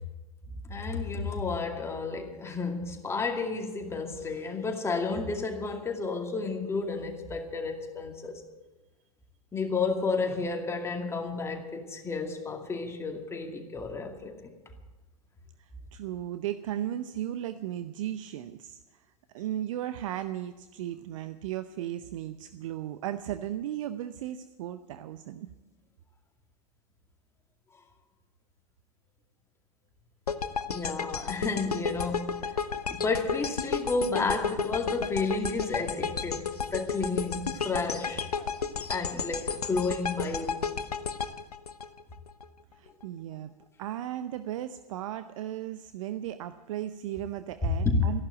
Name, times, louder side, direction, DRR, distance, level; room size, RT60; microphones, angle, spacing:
voice 1, 0.6-8.3 9.5-14.5 30.7-32.4 32.9-38.2 38.9-40.6 47.8-48.0, left 4 dB, 15° left, 2.4 m, -31 dB
voice 2, 15.6-19.1 19.3-25.5 42.7-43.5 43.8-48.2, right 12 dB, 55° right, 0.7 m, -36 dB
sound 1, 30.3-42.4, left 6 dB, 80° left, 0.9 m, -33 dB
14.5 x 11.5 x 7.8 m
figure-of-eight pair, 95°, 20 cm